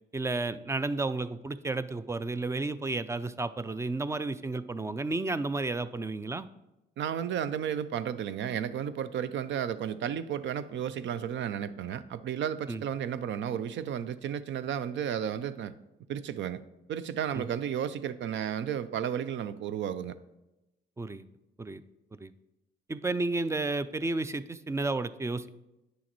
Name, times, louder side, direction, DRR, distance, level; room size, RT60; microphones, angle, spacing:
voice 1, 0.1-6.5 12.7-12.8 17.3-17.4 21.0-21.2 21.6-21.8 22.2-22.3 22.9-25.5, right 3 dB, 15° right, 14 dB, 0.3 m, -32 dB
voice 2, 7.0-15.7 16.1-16.6 16.9-20.2, right 9 dB, 70° right, 14 dB, 0.5 m, -33 dB
9.4 x 6.3 x 3.0 m, 0.96 s
cardioid pair, 90°, 20 cm